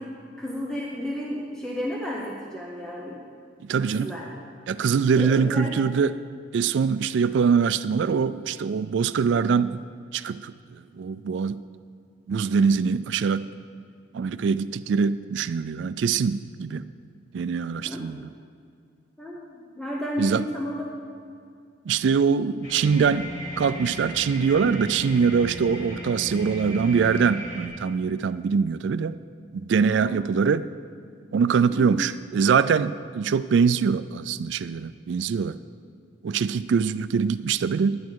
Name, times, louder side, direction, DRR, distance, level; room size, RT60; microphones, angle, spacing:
voice 1, 0.4-3.2 3.8-4.3 5.2-5.7 17.8-18.1 19.2-20.8 29.9-30.2 31.6-32.0, left 1 dB, 5° left, -3 dB, 0.9 m, -32 dB
voice 2, 3.7-4.1 4.7-6.1 6.5-9.8 10.1-10.5 11.0-11.6 12.3-13.5 14.1-16.8 17.3-18.3 20.2-20.4 21.9-23.3 23.6-29.2 29.5-30.7 31.3-35.6 36.2-38.0, right 6 dB, 70° right, 13 dB, 0.3 m, -23 dB
sound 1, 22.6-27.7, equal, 80° left, 3.3 m, -36 dB
11.0 x 10.5 x 4.6 m, 2.3 s
head